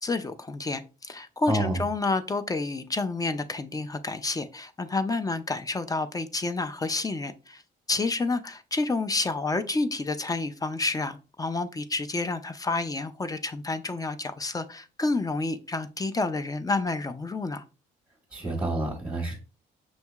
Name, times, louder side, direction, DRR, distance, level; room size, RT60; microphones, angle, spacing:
voice 1, 0.0-7.6 7.9-17.6, left 3 dB, 20° left, 0.5 m, -29 dB
voice 2, 1.5-1.8 18.3-19.4, right 1 dB, 10° right, 1.5 m, -28 dB
6.2 x 2.7 x 2.3 m
cardioid pair, 90°, 20 cm